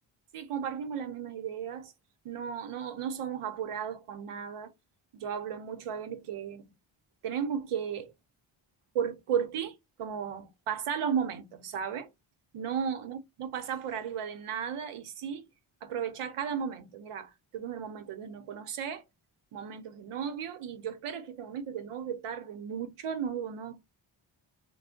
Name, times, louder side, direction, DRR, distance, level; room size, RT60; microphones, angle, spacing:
voice 1, 0.3-1.9 2.2-4.7 5.1-6.6 7.2-8.1 8.9-12.1 12.5-15.4 15.8-19.0 19.5-23.8, right 8 dB, 85° right, 0.8 m, -35 dB
3.3 x 2.1 x 3.7 m
wide cardioid pair, 110°, 49 cm